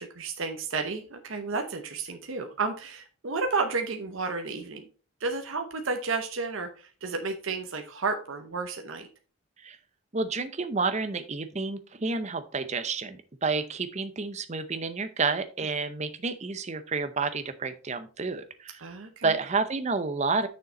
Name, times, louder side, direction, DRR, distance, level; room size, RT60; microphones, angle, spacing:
voice 1, 0.0-4.8 5.2-9.1 18.8-19.3, right 4 dB, 65° right, 5 dB, 0.8 m, -32 dB
voice 2, 10.1-18.9 19.2-20.5, right 4 dB, 30° right, 11 dB, 0.6 m, -30 dB
6.8 x 6.5 x 3.9 m, 0.37 s
head